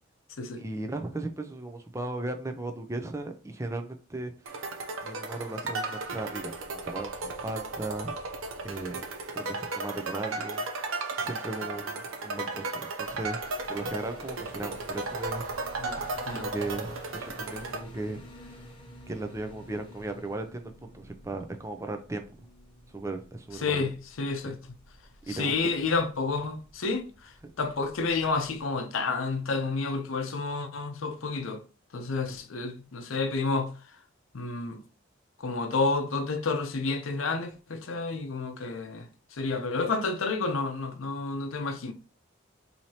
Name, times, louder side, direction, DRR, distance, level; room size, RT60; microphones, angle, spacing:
voice 1, 0.6-4.7 5.0-8.1 8.6-9.0 9.3-10.6 11.2-13.4 13.7-16.0 16.3-18.6 19.1-22.2 22.9-23.9 24.4-24.5 25.3-25.5, right 2 dB, 15° right, 0.4 m, -37 dB
sound 1, 4.5-17.8, right 3 dB, 85° right, 0.7 m, -35 dB
sound 2, 13.0-28.6, equal, 25° left, 0.9 m, -51 dB
voice 2, 15.8-16.5 23.6-24.6 25.3-31.6 31.9-33.7 34.3-34.8 35.4-41.9, left 4 dB, 80° left, 0.6 m, -30 dB
4.5 x 2.8 x 2.8 m
head